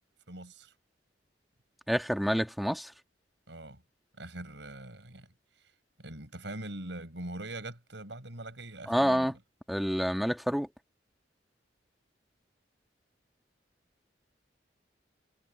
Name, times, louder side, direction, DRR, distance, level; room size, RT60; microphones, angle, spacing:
voice 1, 0.3-0.7 3.5-3.8 4.2-5.3 6.0-9.4, right 1 dB, 80° right, 5.3 m, -42 dB
voice 2, 1.9-2.9 8.9-9.3 9.7-10.7, equal, ahead, 1.7 m, -28 dB
head